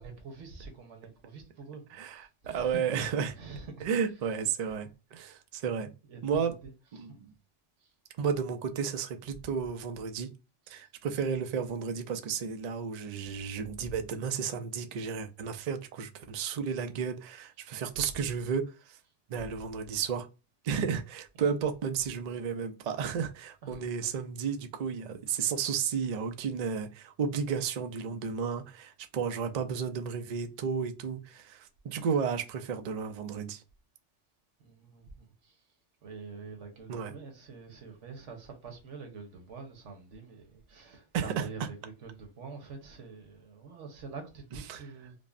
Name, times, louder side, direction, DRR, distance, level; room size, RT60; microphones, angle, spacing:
voice 1, 0.0-3.9 4.2-4.4 4.6-4.8 5.2-5.4 6.1-7.1 7.8-7.9 10.6-10.8 13.8-13.9 18.0-18.3 19.4-19.7 21.3-21.6 23.6-24.2 34.6-35.6 36.0-45.2, right 4 dB, 80° right, 1.3 m, -46 dB
voice 2, 1.9-3.3 3.8-5.9 6.2-6.5 7.0-7.3 8.2-10.3 10.7-19.0 19.3-20.3 20.6-33.6 36.9-37.1 41.1-41.5 44.7-44.8, right 6 dB, 65° right, 0.4 m, -33 dB
5.2 x 2.1 x 2.4 m
omnidirectional pair, 1.2 m